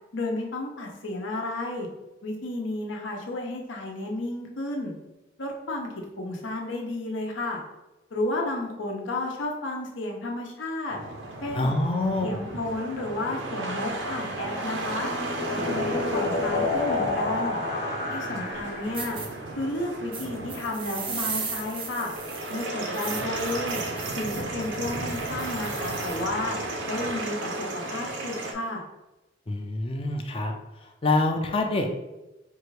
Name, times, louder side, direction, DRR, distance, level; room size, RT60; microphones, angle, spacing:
voice 1, 0.1-1.9 2.2-4.9 5.4-5.9 6.2-7.6 8.1-11.0 11.4-11.7 12.2-15.1 15.5-17.6 18.1-19.2 19.6-22.1 22.5-23.8 24.2-26.6 26.9-28.8, left 2 dB, 90° left, 1 dB, 0.8 m, -32 dB
sound 1, 10.9-28.5, right 2 dB, 75° right, 0.6 m, -34 dB
voice 2, 11.5-12.4 29.5-31.9, left 2 dB, 30° left, 4 dB, 0.4 m, -26 dB
sound 2, 14.4-19.2, left 3 dB, 50° left, 0.9 m, -29 dB
sound 3, 18.5-18.6 18.9-19.3 20.1-26.3, right 5 dB, 30° right, 0.5 m, -37 dB
4.5 x 2.5 x 3.1 m, 1.0 s
head